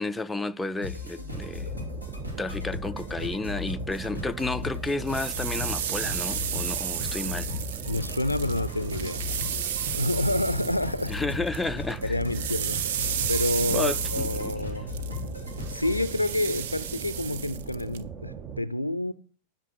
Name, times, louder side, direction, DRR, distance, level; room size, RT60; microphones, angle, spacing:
voice 1, 0.0-1.7 2.4-7.5 11.1-12.1 13.7-14.6, left 2 dB, 10° left, 0.5 m, -32 dB
sound 1, 0.8-16.1, left 4 dB, 80° right, 2.6 m, -37 dB
sound 2, 1.3-18.6, right 7 dB, 30° right, 0.9 m, -40 dB
sound 3, 4.8-11.6 11.9-18.0, right 9 dB, 55° right, 0.7 m, -33 dB
voice 2, 7.9-9.2 9.9-11.2 12.0-12.8 13.3-14.9 15.7-19.1, left 1 dB, 85° left, 0.5 m, -28 dB
11.5 x 6.0 x 6.5 m
figure-of-eight pair, 90°, 0 cm